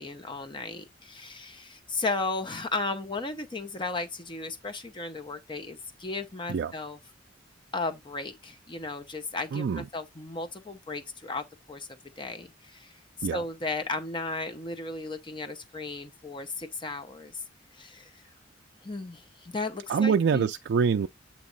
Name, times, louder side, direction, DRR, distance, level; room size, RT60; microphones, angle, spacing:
voice 1, 0.0-7.0 7.7-11.9 12.2-12.9 13.3-17.4 17.7-18.1 18.8-20.5, left 3 dB, 25° left, 0.7 m, -35 dB
voice 2, 9.5-9.9 13.2-13.4 19.9-21.1, right 6 dB, 65° right, 0.3 m, -25 dB
8.3 x 3.0 x 4.0 m
head